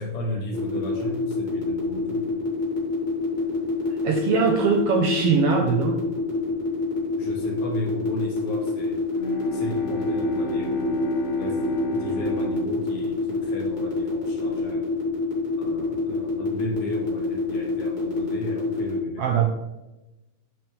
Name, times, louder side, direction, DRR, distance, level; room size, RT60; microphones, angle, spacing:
voice 1, 0.0-2.3 7.2-9.0 9.5-11.0 11.4-14.9 15.6-19.5, equal, 55° left, 0 dB, 2.2 m, -35 dB
sound 1, 0.5-19.0, left 4 dB, 15° left, 2.7 m, -28 dB
voice 2, 4.0-6.0 19.2-19.5, right 6 dB, 75° right, 2 dB, 1.5 m, -21 dB
Bowed string instrument, 9.1-14.2, right 2 dB, 70° left, 0.9 m, -32 dB
8.7 x 6.1 x 3.3 m, 0.99 s
omnidirectional pair, 3.4 m